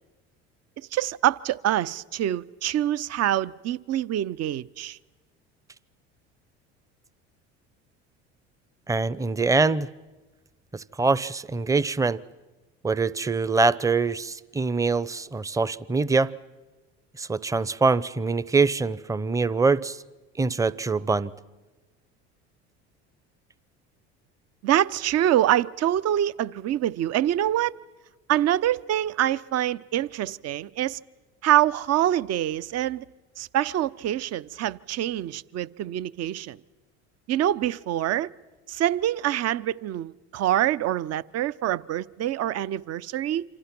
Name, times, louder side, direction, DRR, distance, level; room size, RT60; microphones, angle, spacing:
voice 1, 0.9-5.0 24.6-27.7 28.3-31.0 31.4-33.0 33.4-36.6 37.3-38.3 38.7-43.4, right 12 dB, 50° right, 0.8 m, -25 dB
voice 2, 8.9-9.9 10.7-12.2 12.8-16.3 17.2-20.0 20.4-21.3, right 4 dB, 10° right, 0.7 m, -24 dB
28.0 x 26.0 x 6.1 m
hypercardioid pair, 75°, 33 cm